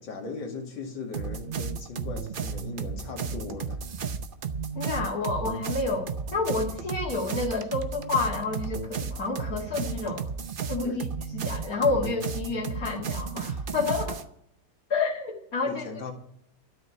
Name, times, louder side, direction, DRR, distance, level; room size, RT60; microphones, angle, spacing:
voice 1, 0.0-3.8 10.8-11.0 15.6-16.1, left 3 dB, 75° left, 2 dB, 2.8 m, -38 dB
sound 1, 1.1-14.2, right 6 dB, 80° right, 0.4 m, -33 dB
voice 2, 4.7-10.3 10.7-11.1 11.3-14.2 14.9-15.9, left 3 dB, 50° left, -4 dB, 2.2 m, -29 dB
12.5 x 6.6 x 9.7 m, 0.72 s
omnidirectional pair, 2.1 m